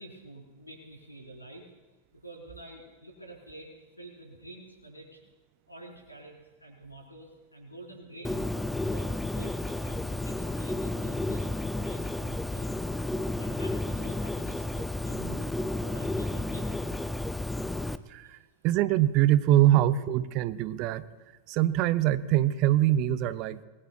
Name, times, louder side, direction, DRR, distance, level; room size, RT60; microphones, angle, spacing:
voice 1, 0.0-1.7 2.2-5.2 5.7-8.5 8.8-12.7 13.4-17.0, right 1 dB, 85° left, -1 dB, 4.6 m, -48 dB
Bird, 8.2-18.0, left 2 dB, 5° left, 0.5 m, -32 dB
voice 2, 18.6-21.0 21.5-23.6, right 13 dB, 40° right, 14 dB, 0.7 m, -23 dB
26.0 x 21.0 x 2.4 m, 1.2 s
figure-of-eight pair, 90°, 0 cm